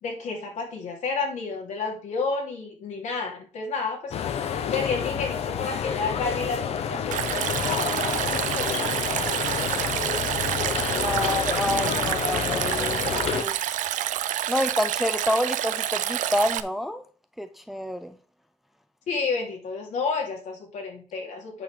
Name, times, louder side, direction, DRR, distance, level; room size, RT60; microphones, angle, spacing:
voice 1, 0.0-4.1 4.7-10.3 19.1-21.6, left 4 dB, 75° left, 2.9 m, -31 dB
sound 1, 4.1-13.4, left 8 dB, 55° left, 0.9 m, -29 dB
Stream, 7.1-16.6, right 12 dB, 85° right, 0.6 m, -28 dB
voice 2, 10.9-13.6 14.5-17.0 17.4-18.2, left 1 dB, ahead, 0.5 m, -28 dB
9.0 x 3.9 x 6.5 m
cardioid pair, 165°, 13 cm